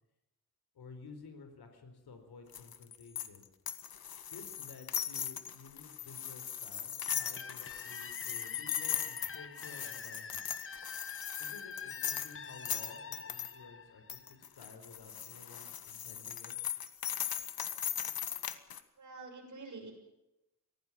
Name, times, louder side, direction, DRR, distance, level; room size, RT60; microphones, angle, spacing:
voice 1, 0.7-3.5 4.3-10.5 11.4-16.5, left 4 dB, 90° left, 7 dB, 4.4 m, -53 dB
sound 1, 2.5-13.5 14.1-18.8, left 9 dB, 70° left, 1.7 m, -39 dB
sound 2, 7.1-14.7, left 5 dB, 35° left, 1.4 m, -46 dB
voice 2, 19.0-19.9, right 3 dB, 50° right, 4 dB, 7.0 m, -47 dB
24.5 x 18.0 x 7.4 m, 0.92 s
wide cardioid pair, 135°, 37 cm